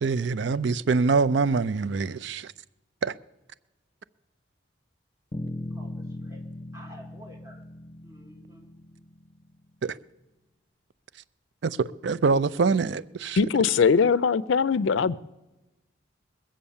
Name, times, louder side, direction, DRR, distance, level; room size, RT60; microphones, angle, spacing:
voice 1, 0.0-2.5 3.0-3.1 9.8-9.9 11.6-13.4, right 4 dB, 65° right, 0.4 m, -24 dB
sound 1, 5.3-9.7, left 1 dB, 30° left, 1.2 m, -39 dB
voice 2, 5.6-6.4 6.7-7.7 8.0-8.8, equal, 15° right, 2.9 m, -50 dB
voice 3, 13.4-15.2, left 5 dB, 75° left, 0.4 m, -21 dB
21.5 x 7.6 x 7.1 m
head